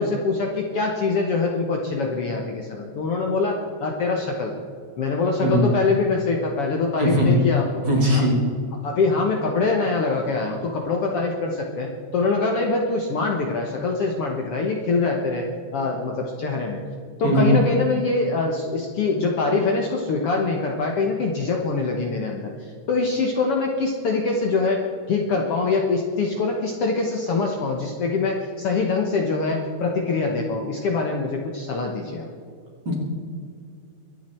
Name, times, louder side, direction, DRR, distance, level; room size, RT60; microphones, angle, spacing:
voice 1, 0.0-4.5 5.0-7.9 8.1-8.3 8.8-15.4 15.7-16.8 17.2-32.3, left 3 dB, 60° left, 1 dB, 1.8 m, -24 dB
voice 2, 7.0-7.4 7.9-8.4 17.2-17.6 32.9-33.0, equal, 35° right, -1 dB, 2.9 m, -19 dB
23.0 x 9.4 x 4.4 m, 2.4 s
omnidirectional pair, 3.7 m